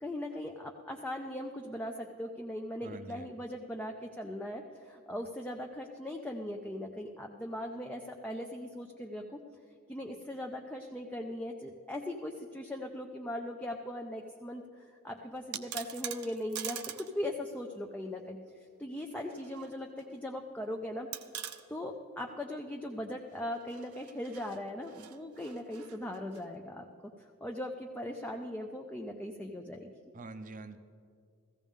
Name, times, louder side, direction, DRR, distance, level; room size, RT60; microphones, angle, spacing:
voice 1, 0.0-9.4 9.9-18.4 18.8-21.1 21.7-26.9 27.4-29.9, left 1 dB, 5° left, 1 dB, 0.5 m, -39 dB
voice 2, 2.8-3.4 30.1-30.8, right 3 dB, 35° right, 9 dB, 0.6 m, -45 dB
sound 1, 15.3-17.1 17.4-17.5 19.0-19.7 20.0-20.1 21.1-21.6 23.5-26.4, right 11 dB, 80° right, 0.6 m, -43 dB
16.0 x 14.5 x 3.6 m, 2.3 s
head